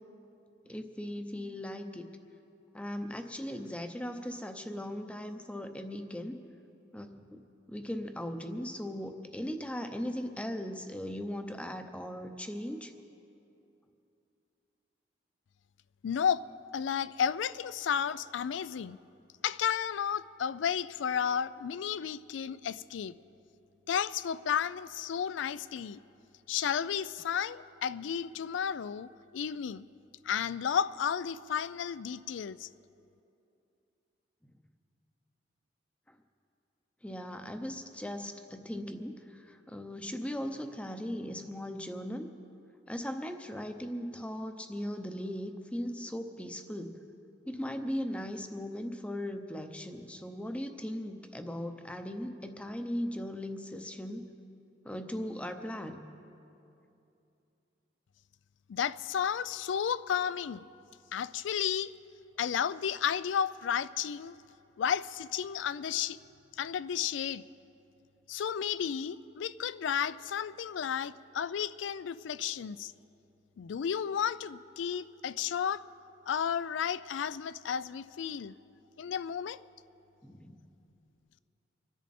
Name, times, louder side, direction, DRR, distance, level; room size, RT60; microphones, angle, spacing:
voice 1, 0.7-2.1 2.7-6.4 6.9-7.4 7.7-12.9 34.4-34.6 36.1-36.2 37.0-42.3 42.9-47.0 47.5-54.2 54.8-56.0 80.2-80.6, equal, 5° left, 6 dB, 0.7 m, -38 dB
voice 2, 16.0-16.4 16.7-19.0 19.4-23.1 23.9-26.0 26.5-29.8 30.2-32.7 58.7-60.6 61.1-61.9 62.4-64.4 64.8-66.2 66.6-67.4 68.3-72.9 73.6-75.8 76.3-78.5 79.0-79.6, left 8 dB, 80° left, 17 dB, 0.4 m, -32 dB
26.0 x 10.5 x 4.3 m, 2.7 s
head